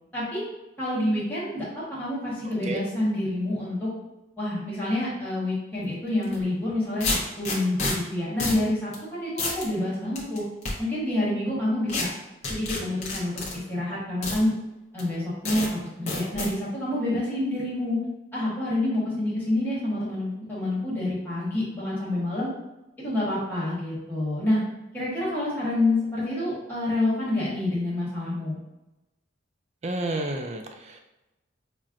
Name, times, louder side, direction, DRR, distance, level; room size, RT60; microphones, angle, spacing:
voice 1, 0.1-0.4 0.8-3.9 4.4-10.4 10.8-12.1 12.5-13.4 13.7-14.5 14.9-18.0 18.3-22.5 23.0-24.6 24.9-28.6, left 1 dB, 10° left, -9 dB, 1.2 m, -27 dB
sound 1, 6.2-6.4 7.0-7.9 8.4-8.6 8.9-9.0 9.4-9.7 10.2-10.7 11.9-12.0 12.4-13.5 14.2-14.4 15.0-15.1 15.5-15.7 16.1-16.5, left 2 dB, 35° left, 0.8 m, -28 dB
voice 2, 29.8-31.0, right 2 dB, 35° right, 4 dB, 0.3 m, -30 dB
5.5 x 2.1 x 2.5 m, 0.99 s
head